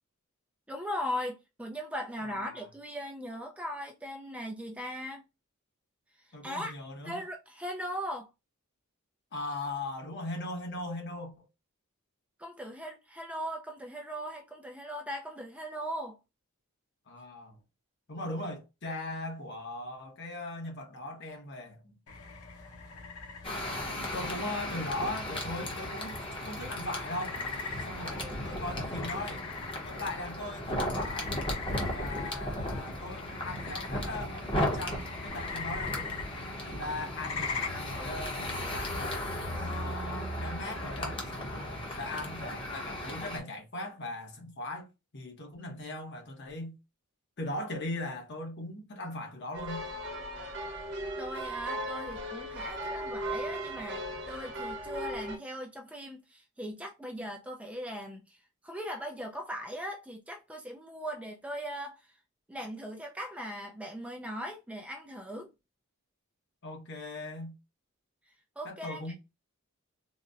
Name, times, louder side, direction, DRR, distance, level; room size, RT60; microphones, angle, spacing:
voice 1, 0.7-5.2 6.4-6.7 7.0-8.3 12.4-16.2 51.2-58.4 58.6-62.0 62.5-65.5 68.6-69.1, equal, 5° right, 0.4 m, -39 dB
voice 2, 2.2-2.7 6.3-7.2 9.3-11.4 17.1-17.6 18.1-22.0 24.1-27.4 27.8-29.4 29.8-31.4 31.9-36.3 36.6-39.3 39.6-46.8 47.4-49.9 66.6-67.5 68.6-69.1, left 2 dB, 50° left, 0.9 m, -39 dB
sound 1, 22.1-39.7, left 4 dB, 90° left, 0.9 m, -42 dB
sound 2, 23.4-43.4, left 1 dB, 25° left, 0.8 m, -36 dB
sound 3, 49.5-55.4, right 1 dB, 55° right, 1.0 m, -37 dB
3.9 x 2.1 x 2.4 m
head